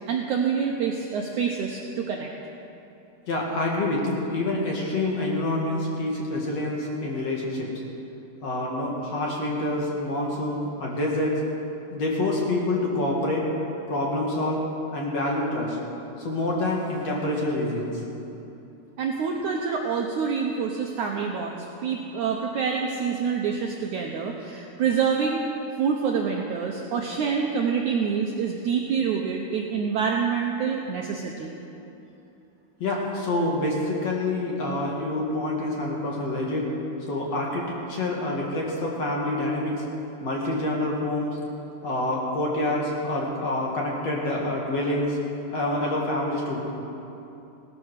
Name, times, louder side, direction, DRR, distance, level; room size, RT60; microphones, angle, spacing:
voice 1, 0.1-2.3 19.0-25.5 25.8-31.5, right 6 dB, 90° right, 0 dB, 1.7 m, -26 dB
voice 2, 3.3-7.7 8.4-11.4 11.9-13.5 13.9-14.6 14.9-15.8 16.2-18.0 32.8-36.7 37.1-39.8 40.2-41.4 41.8-45.2 45.5-46.6, left 1 dB, 45° left, -3 dB, 2.5 m, -27 dB
17.0 x 12.5 x 6.5 m, 2.9 s
omnidirectional pair, 4.7 m